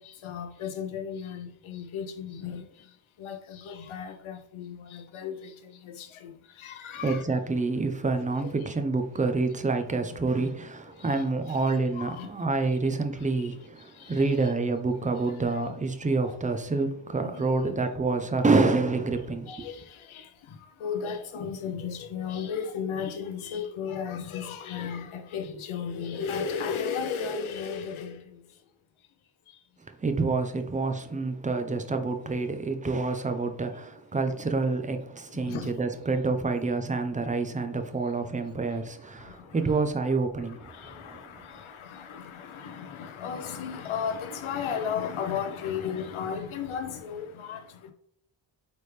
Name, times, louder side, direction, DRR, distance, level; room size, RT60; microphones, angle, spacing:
voice 1, 0.0-2.6 3.2-5.5 5.8-6.3 6.6-7.2 8.1-8.2 9.3-9.4 11.0-11.2 11.5-12.3 14.0-14.5 16.2-16.4 17.3-17.8 19.5-20.3 20.8-28.2 35.4-35.7 39.3-39.8 40.6-47.9, left 7 dB, 75° left, 0.8 m, -35 dB
voice 2, 7.0-19.7 29.9-40.8 41.1-41.2, right 3 dB, 15° right, 0.5 m, -27 dB
8.5 x 3.5 x 3.2 m
wide cardioid pair, 155°, 49 cm